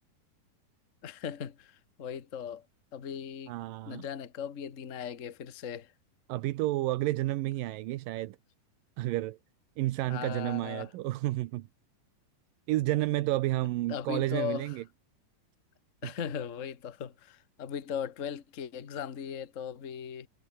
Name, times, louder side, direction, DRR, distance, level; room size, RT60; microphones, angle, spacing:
voice 1, 1.0-2.6 2.9-3.5 3.9-5.9 10.1-10.9 13.9-14.8 16.0-20.3, left 8 dB, 85° left, 0.6 m, -38 dB
voice 2, 3.5-4.1 6.3-8.4 9.0-9.4 9.8-11.7 12.7-14.8 16.0-16.1, right 17 dB, 80° right, 2.5 m, -31 dB
omnidirectional pair, 4.0 m